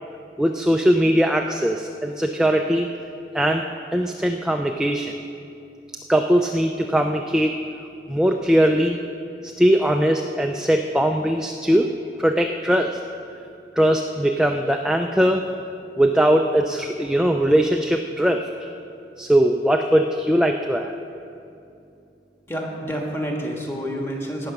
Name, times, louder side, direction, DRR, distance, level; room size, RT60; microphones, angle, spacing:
voice 1, 0.4-2.9 3.3-3.6 3.9-5.1 6.1-7.6 8.1-9.0 9.4-11.9 12.2-13.0 13.8-15.4 16.0-18.5 19.2-20.9, equal, 5° right, 3 dB, 0.3 m, -20 dB
voice 2, 22.5-24.5, equal, 15° left, 0 dB, 1.5 m, -28 dB
17.5 x 6.4 x 5.9 m, 2.6 s
head